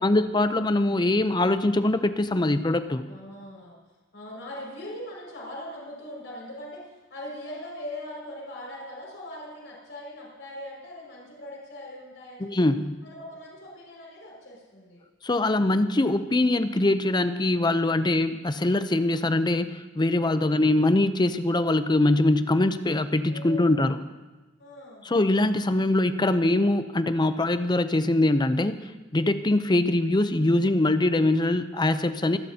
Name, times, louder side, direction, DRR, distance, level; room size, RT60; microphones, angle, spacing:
voice 1, 0.0-3.0 12.4-13.0 15.2-24.0 25.1-32.4, left 2 dB, 25° left, 11 dB, 0.6 m, -23 dB
voice 2, 3.0-3.8 4.1-12.5 13.0-15.0 20.4-20.6 23.3-24.0 24.6-25.1, left 1 dB, 70° left, -4 dB, 5.7 m, -41 dB
26.5 x 12.0 x 2.8 m, 1.2 s
head